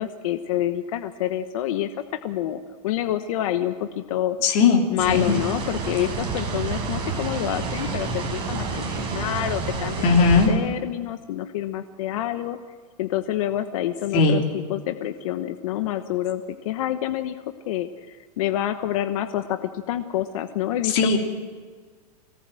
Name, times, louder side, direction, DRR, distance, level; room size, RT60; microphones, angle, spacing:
voice 1, 0.0-1.9 2.2-4.4 4.9-12.6 13.0-14.4 14.7-21.2, left 12 dB, 60° left, 8 dB, 1.2 m, -27 dB
voice 2, 4.4-5.3 10.0-10.5 14.1-14.4 20.9-21.2, left 4 dB, 40° left, 1 dB, 3.3 m, -18 dB
sound 1, 5.0-10.5, right 4 dB, 25° right, 6.1 m, -29 dB
25.5 x 18.0 x 7.7 m, 1.5 s
supercardioid pair, 160°, 20 cm